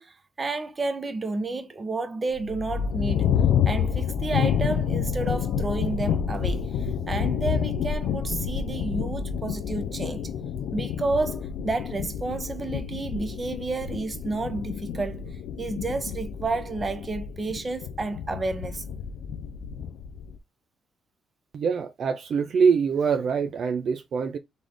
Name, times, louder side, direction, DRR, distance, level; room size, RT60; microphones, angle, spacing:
voice 1, 0.0-10.3 10.7-15.3 15.6-18.8, right 3 dB, 30° right, 1.0 m, -31 dB
sound 1, 2.3-20.4, left 8 dB, 85° left, 0.5 m, -29 dB
voice 2, 21.5-24.4, right 6 dB, 60° right, 0.5 m, -24 dB
4.0 x 3.3 x 3.6 m
cardioid pair, 90°, 0 cm